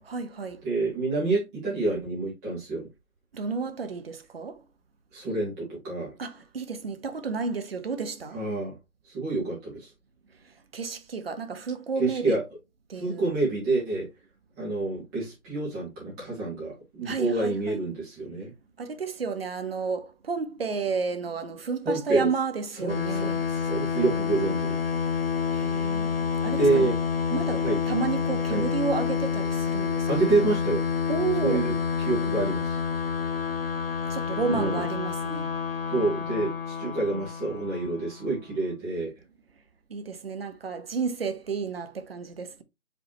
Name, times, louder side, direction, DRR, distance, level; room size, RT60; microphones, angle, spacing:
voice 1, 0.0-0.6 3.3-4.6 6.2-8.4 10.4-12.4 12.9-13.3 17.0-17.8 18.8-23.5 25.5-26.9 27.3-30.1 31.1-31.7 34.1-35.5 39.9-42.6, right 5 dB, 45° right, 0.7 m, -31 dB
voice 2, 0.6-2.9 5.1-6.1 8.3-8.8 9.1-9.9 12.0-12.4 12.9-14.1 14.6-18.5 21.9-22.3 22.8-24.8 26.6-26.9 27.6-27.8 28.5-28.6 30.1-30.8 31.4-31.7 32.1-32.8 34.5-34.9 35.9-39.1, right 3 dB, 10° right, 1.6 m, -27 dB
sound 1, 22.9-38.3, left 6 dB, 45° left, 0.6 m, -28 dB
5.1 x 3.5 x 3.0 m
figure-of-eight pair, 150°, 43 cm